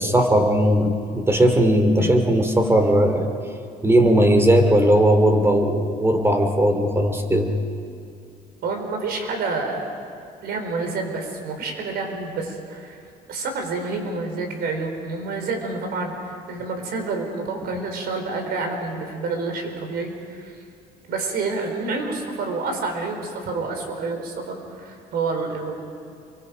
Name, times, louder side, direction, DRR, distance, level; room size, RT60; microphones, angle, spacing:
voice 1, 0.0-3.3 3.8-7.5, right 1 dB, 15° right, 5 dB, 2.9 m, -18 dB
voice 2, 8.6-9.9 10.4-13.0 13.3-20.5 21.1-25.7, right 3 dB, 70° right, 4 dB, 4.4 m, -28 dB
29.0 x 23.5 x 5.3 m, 2.4 s
cardioid pair, 110°, 17 cm